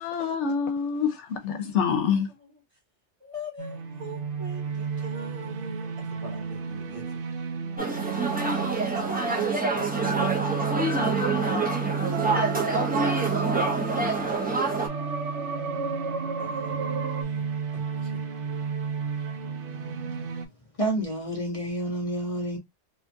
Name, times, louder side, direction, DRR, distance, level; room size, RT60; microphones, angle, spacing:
voice 1, 0.0-2.3, left 6 dB, 75° left, 0.9 m, -26 dB
voice 2, 2.0-2.6 3.2-7.2 8.9-9.7 16.4-16.8 17.4-17.5 17.7-18.2, equal, 30° right, 1.2 m, -42 dB
sound 1, 3.6-20.5, right 6 dB, 60° right, 0.6 m, -33 dB
sound 2, 7.8-14.9, right 3 dB, 10° right, 0.5 m, -26 dB
sound 3, 12.1-17.2, right 4 dB, 90° right, 0.9 m, -33 dB
voice 3, 20.8-22.6, right 1 dB, 35° left, 0.8 m, -29 dB
2.7 x 2.3 x 2.5 m
omnidirectional pair, 1.2 m